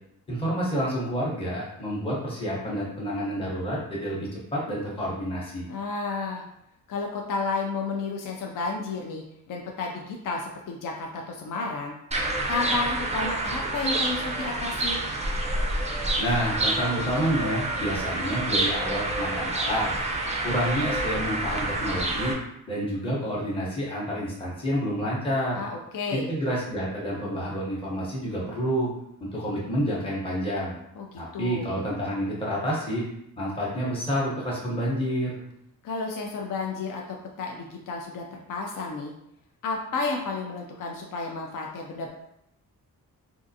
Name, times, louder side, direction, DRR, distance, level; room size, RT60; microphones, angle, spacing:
voice 1, 0.3-5.7 16.2-19.9 20.4-22.4 22.7-25.6 26.1-28.9 29.2-30.7 31.2-33.0 33.4-35.5, equal, 15° left, -6 dB, 0.8 m, -29 dB
voice 2, 5.7-6.4 6.9-12.0 12.5-15.0 25.5-26.3 31.0-31.7 35.8-39.1 39.6-42.1, left 4 dB, 60° left, 0 dB, 0.5 m, -32 dB
sound 1, 12.1-22.3, right 2 dB, 20° right, 0.4 m, -28 dB
3.6 x 2.5 x 2.6 m, 0.79 s
wide cardioid pair, 140°, 37 cm